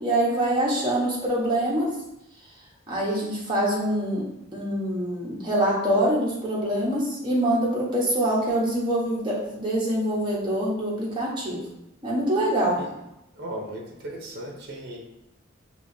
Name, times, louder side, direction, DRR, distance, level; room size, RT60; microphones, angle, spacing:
voice 1, 0.0-1.9 2.9-4.2 4.5-11.6 12.0-12.8, right 1 dB, 25° right, -6 dB, 1.0 m, -24 dB
voice 2, 13.3-15.0, right 1 dB, 50° right, 0 dB, 0.7 m, -36 dB
4.9 x 2.9 x 2.7 m, 0.87 s
head